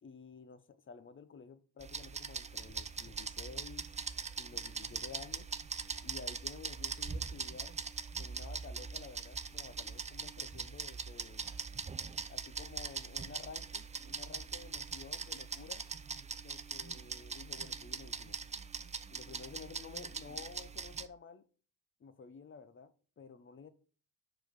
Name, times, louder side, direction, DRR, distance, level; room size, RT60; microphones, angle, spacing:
voice 1, 0.0-3.9 4.4-5.5 6.0-7.8 8.2-11.5 12.3-15.8 16.4-18.4 19.1-21.4 22.0-23.7, left 5 dB, 30° left, 0.8 m, -52 dB
sound 1, 1.8-21.1, right 5 dB, 20° right, 0.5 m, -42 dB
6.0 x 4.8 x 4.7 m
cardioid pair, 85°, 39 cm